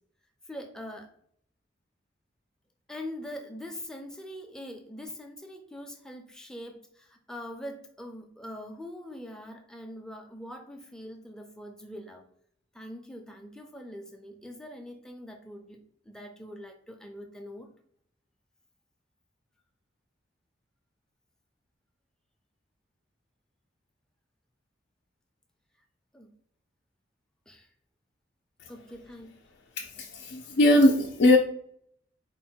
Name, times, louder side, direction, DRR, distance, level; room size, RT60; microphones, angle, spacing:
voice 1, 0.5-1.1 2.9-12.2 12.7-15.8 16.0-17.7 26.1-26.3 27.5-27.7 28.7-29.4, left 1 dB, 5° left, 3 dB, 0.5 m, -43 dB
voice 2, 29.8-31.4, left 1 dB, 60° left, -2 dB, 0.5 m, -21 dB
4.5 x 2.1 x 4.2 m, 0.65 s
head